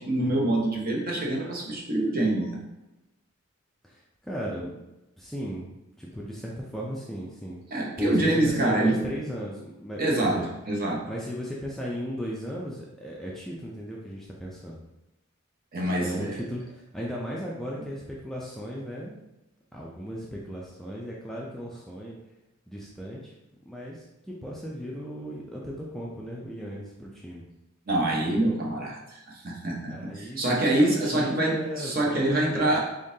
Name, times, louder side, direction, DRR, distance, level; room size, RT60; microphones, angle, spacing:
voice 1, 0.0-2.6 7.7-9.0 10.0-11.0 15.7-16.3 27.9-32.8, right 1 dB, 45° right, -2 dB, 0.8 m, -25 dB
voice 2, 3.8-4.7 5.2-7.6 8.0-10.5 11.1-14.8 15.9-19.2 19.7-22.2 22.7-23.3 23.7-27.4 29.9-32.8, equal, ahead, -4 dB, 0.4 m, -36 dB
3.7 x 3.6 x 2.7 m, 0.96 s
head